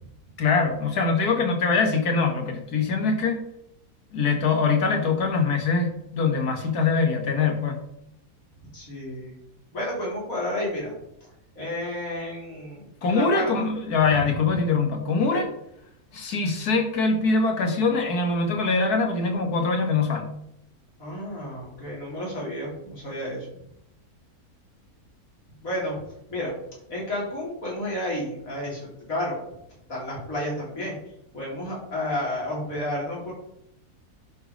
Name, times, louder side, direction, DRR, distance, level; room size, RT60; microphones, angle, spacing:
voice 1, 0.4-3.4 4.1-7.8 13.0-15.5 16.1-20.3, left 4 dB, 75° left, 4 dB, 2.1 m, -23 dB
voice 2, 8.7-9.4 9.7-10.9 11.6-13.5 14.2-14.3 15.3-15.4 21.0-23.5 25.6-26.0 26.3-26.5 26.9-29.4 29.9-31.0 31.3-33.3, left 1 dB, 60° left, -4 dB, 4.1 m, -31 dB
10.5 x 5.1 x 5.2 m, 0.78 s
omnidirectional pair, 1.6 m